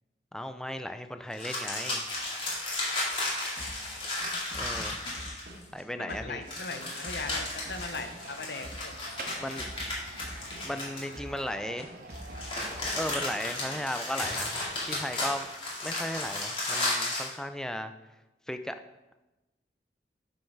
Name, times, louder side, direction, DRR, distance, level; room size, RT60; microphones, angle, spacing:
voice 1, 0.3-2.0 4.5-5.0 5.7-6.4 9.4-9.7 10.6-11.9 12.9-15.5 15.8-17.9 18.5-18.7, left 1 dB, 5° left, 8 dB, 0.3 m, -36 dB
sound 1, 1.3-5.6 6.5-11.4 12.1-17.3, left 2 dB, 30° left, 2.2 m, -34 dB
voice 2, 3.5-4.1 4.8-4.9 6.0-8.9, left 3 dB, 65° left, 7 dB, 0.7 m, -39 dB
sound 2, 3.6-5.8 6.1-8.3 8.6-9.0 9.2-10.9 11.1-11.5 11.8-13.4, equal, 70° right, 1.9 m, -45 dB
sound 3, 7.4-13.8, right 3 dB, 55° right, 0.6 m, -47 dB
6.4 x 6.4 x 4.6 m, 1.0 s
head